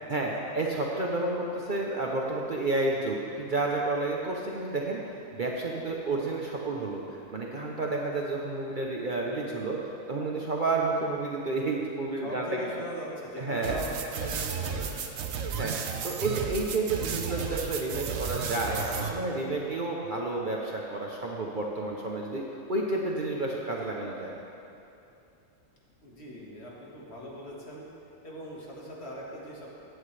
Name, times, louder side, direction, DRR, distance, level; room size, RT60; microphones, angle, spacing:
voice 1, 0.1-12.7 13.4-13.7 15.6-15.7 16.0-24.3, right 2 dB, 40° right, -2 dB, 0.8 m, -31 dB
voice 2, 12.2-15.1 26.0-27.9 28.2-29.7, equal, 50° left, -4 dB, 2.0 m, -40 dB
sound 1, 13.6-19.1, right 6 dB, 70° right, 1.1 m, -33 dB
15.5 x 9.5 x 3.3 m, 2.7 s
omnidirectional pair, 1.4 m